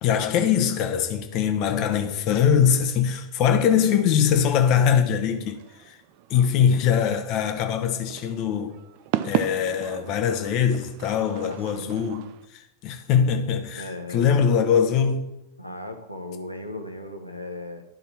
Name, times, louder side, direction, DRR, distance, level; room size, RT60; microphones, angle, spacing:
voice 1, 0.0-6.0 6.3-8.8 9.2-15.3, left 8 dB, 40° left, 1.0 m, -22 dB
sound 1, 5.3-12.5, right 12 dB, 45° right, 0.4 m, -35 dB
voice 2, 11.2-12.0 13.7-14.4 15.6-17.8, left 1 dB, 90° right, 0.9 m, -37 dB
11.5 x 4.0 x 4.4 m
figure-of-eight pair, 90°, 0 cm